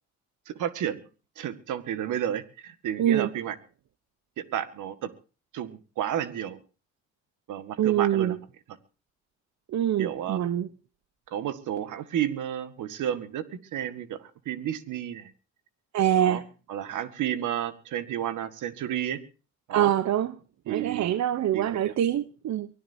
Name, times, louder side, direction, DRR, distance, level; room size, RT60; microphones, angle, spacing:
voice 1, 0.5-1.1 1.4-3.6 4.4-5.1 5.5-6.6 7.5-8.4 10.0-10.4 11.3-13.5 13.7-15.3 16.2-16.4 16.7-19.2 19.7-19.9 20.7-21.2 21.5-21.9, right 10 dB, 80° right, 1.9 m, -32 dB
voice 2, 3.0-3.3 7.8-8.4 9.7-10.7 15.9-16.4 19.7-20.3 20.7-22.7, right 11 dB, 65° right, 0.9 m, -24 dB
24.0 x 17.5 x 2.8 m
cardioid pair, 90°, 30 cm